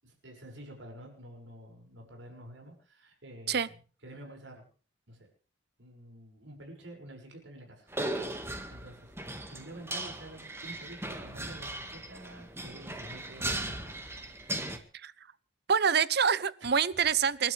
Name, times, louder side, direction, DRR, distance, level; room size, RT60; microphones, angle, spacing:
voice 1, 0.0-3.7 4.0-4.7 5.1-5.3 5.8-7.9 8.7-9.1 9.5-14.1 16.6-16.8, right 1 dB, 90° right, 1 dB, 6.4 m, -49 dB
sound 1, 7.9-14.8, right 1 dB, 15° right, 1.9 m, -38 dB
voice 2, 15.7-17.5, right 7 dB, 60° right, 18 dB, 0.8 m, -26 dB
28.5 x 12.0 x 3.5 m, 0.39 s
head